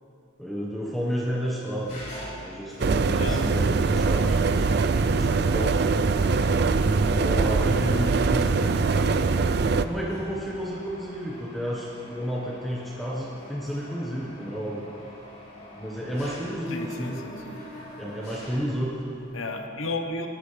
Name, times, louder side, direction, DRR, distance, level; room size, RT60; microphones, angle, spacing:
voice 1, 0.4-2.0 2.4-4.7 5.1-5.9 6.5-9.2 9.8-14.8 15.8-17.2 18.0-19.2, equal, ahead, -5 dB, 1.2 m, -31 dB
Mechanisms, 1.8-19.3, equal, 55° left, 3.6 m, -45 dB
sound 1, 2.8-9.8, right 4 dB, 55° right, 0.4 m, -22 dB
voice 2, 16.7-17.6 19.3-20.3, left 2 dB, 85° left, 4 dB, 1.1 m, -33 dB
18.5 x 12.5 x 3.3 m, 2.8 s
head